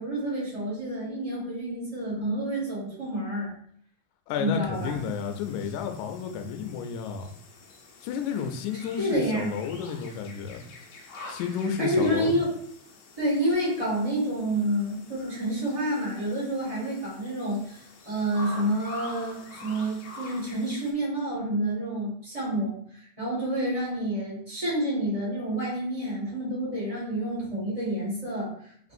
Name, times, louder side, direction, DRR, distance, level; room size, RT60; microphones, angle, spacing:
voice 1, 0.0-3.5 4.4-4.9 8.9-9.5 11.8-12.5 13.2-28.7, right 1 dB, 20° right, -8 dB, 1.0 m, -29 dB
voice 2, 4.3-7.3 8.0-10.6 11.3-12.4, left 7 dB, 85° left, 6 dB, 2.0 m, -31 dB
sound 1, 4.7-20.9, left 2 dB, 70° left, 1.9 m, -46 dB
5.0 x 3.0 x 2.5 m, 0.63 s
omnidirectional pair, 3.4 m